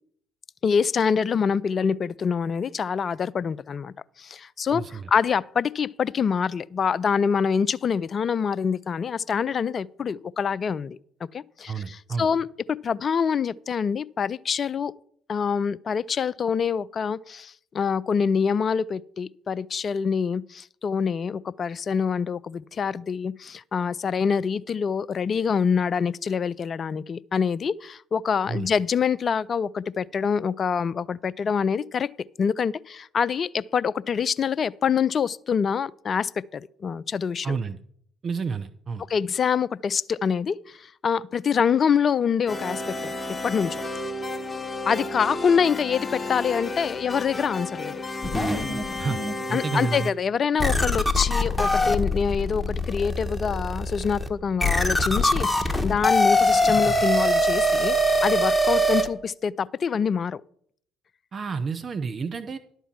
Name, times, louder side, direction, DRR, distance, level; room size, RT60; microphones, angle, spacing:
voice 1, 0.6-11.0 11.3-12.5 12.8-14.9 15.3-32.1 32.4-37.6 39.1-43.1 43.4-43.8 44.9-48.0 49.5-60.4, left 6 dB, 40° left, 0.3 m, -25 dB
voice 2, 4.7-5.1 11.7-12.3 28.5-28.7 37.4-37.8 38.2-39.0 49.0-49.2 49.5-50.1 61.3-62.6, right 5 dB, 40° right, 0.6 m, -30 dB
sound 1, 42.5-50.1, left 2 dB, 25° left, 0.8 m, -32 dB
sound 2, 48.2-49.4 50.0-50.1 50.6-59.1, left 1 dB, 5° left, 1.2 m, -23 dB
11.0 x 4.5 x 7.3 m
figure-of-eight pair, 55°, 0 cm